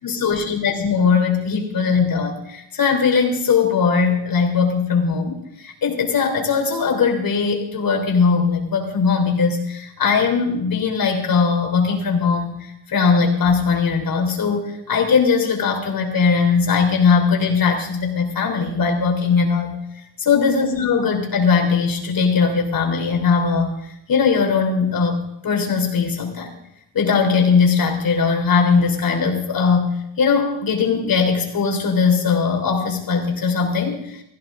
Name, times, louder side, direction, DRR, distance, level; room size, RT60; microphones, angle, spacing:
voice 1, 0.0-19.8 20.3-26.5 26.9-34.2, left 5 dB, 50° left, 2 dB, 3.4 m, -19 dB
16.0 x 15.0 x 3.7 m, 0.76 s
supercardioid pair, 80°, 43 cm